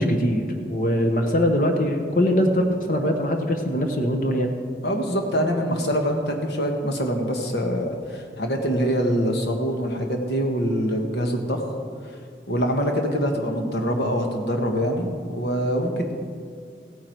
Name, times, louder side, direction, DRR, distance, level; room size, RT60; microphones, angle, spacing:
voice 1, 0.0-4.5, equal, 50° left, 4 dB, 1.1 m, -22 dB
voice 2, 4.8-11.7 12.5-16.1, equal, 70° left, 3 dB, 1.5 m, -24 dB
16.0 x 9.6 x 4.6 m, 2.3 s
head